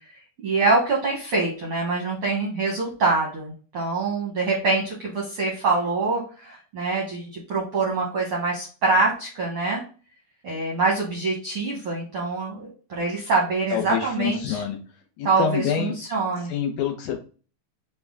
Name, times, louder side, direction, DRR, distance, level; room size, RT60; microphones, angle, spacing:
voice 1, 0.1-9.8 10.4-14.6 15.2-16.5, right 3 dB, 75° right, -2 dB, 1.2 m, -25 dB
voice 2, 13.7-14.8 15.2-16.0 16.5-17.2, left 8 dB, 75° left, 2 dB, 2.0 m, -26 dB
5.6 x 2.2 x 3.5 m, 0.38 s
omnidirectional pair, 3.7 m